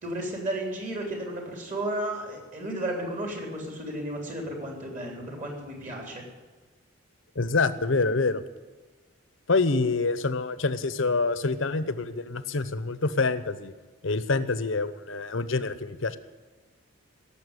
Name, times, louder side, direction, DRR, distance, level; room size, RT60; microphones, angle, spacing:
voice 1, 0.0-6.2, right 1 dB, 35° right, 1 dB, 3.4 m, -33 dB
voice 2, 7.3-8.4 9.5-13.7 14.0-16.2, left 3 dB, 70° left, 13 dB, 0.9 m, -26 dB
17.0 x 7.2 x 9.9 m, 1.3 s
head